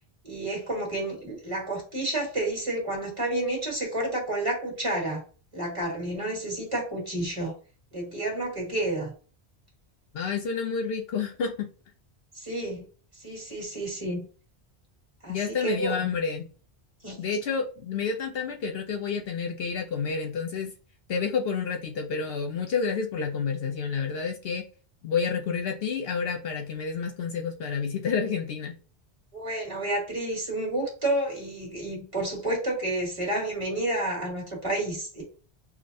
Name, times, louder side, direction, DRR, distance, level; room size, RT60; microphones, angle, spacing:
voice 1, 0.2-5.2 5.5-7.5 7.9-9.1 12.3-12.8 13.2-14.2 15.2-16.1 17.0-17.2 29.3-35.2, right 1 dB, 30° right, 1.6 m, -30 dB
voice 2, 10.1-11.7 15.3-16.5 17.2-20.7 21.1-24.7 25.0-28.8, left 6 dB, 65° left, 0.7 m, -29 dB
4.9 x 2.1 x 2.6 m
omnidirectional pair, 1.1 m